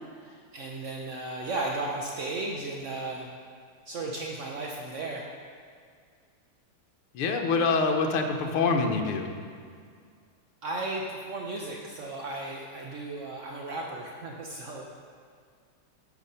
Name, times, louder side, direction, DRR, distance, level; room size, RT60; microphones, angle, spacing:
voice 1, 0.2-3.3 3.9-5.3 10.6-14.9, right 2 dB, 65° right, -1 dB, 0.7 m, -35 dB
voice 2, 7.1-9.4, left 4 dB, 75° left, 3 dB, 1.8 m, -25 dB
12.0 x 7.3 x 5.6 m, 2.1 s
omnidirectional pair, 2.4 m